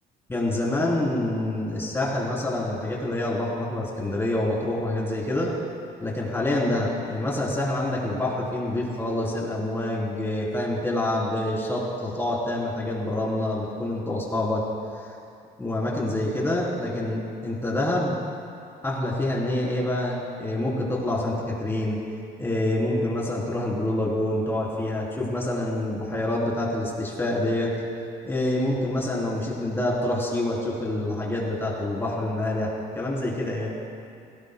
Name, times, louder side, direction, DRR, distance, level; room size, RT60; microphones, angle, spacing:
voice 1, 0.3-5.5 6.0-14.6 15.0-15.1 15.6-18.1 18.8-22.0 22.4-27.7 28.2-33.7, left 1 dB, 15° left, -4 dB, 3.5 m, -27 dB
17.5 x 17.5 x 2.3 m, 2.5 s
cardioid pair, 110°, 17 cm